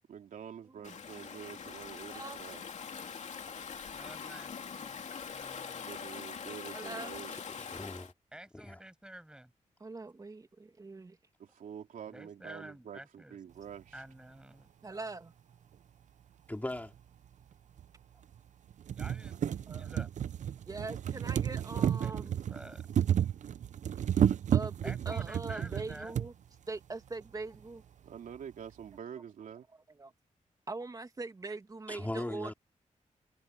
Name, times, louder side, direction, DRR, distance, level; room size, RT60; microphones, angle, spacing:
voice 1, 0.1-2.6 5.9-7.3 11.4-14.0 28.0-29.7, right 8 dB, 90° right, 3.3 m, -47 dB
Stream / Ocean, 0.8-8.1, left 6 dB, 60° left, 2.6 m, -43 dB
voice 2, 3.9-5.0 5.3-5.8 8.3-9.5 12.1-13.4 13.9-14.7 18.9-19.4 19.7-20.1 22.0-22.9 24.8-26.1, right 1 dB, 5° right, 6.4 m, -49 dB
voice 3, 6.7-7.2 9.8-11.2 14.8-15.3 19.7-20.1 20.7-22.4 24.5-26.3 26.7-27.8 30.0-30.1 30.7-32.5, right 3 dB, 25° right, 2.2 m, -42 dB
voice 4, 7.6-8.1 8.5-8.8 16.5-16.9 31.9-32.5, left 1 dB, 10° left, 3.0 m, -38 dB
sound 1, 16.7-16.8 17.8-17.9 18.3-18.4 18.7-26.3 27.2-27.3 27.5-27.6, right 9 dB, 65° right, 0.6 m, -32 dB
wide cardioid pair, 120°, 13 cm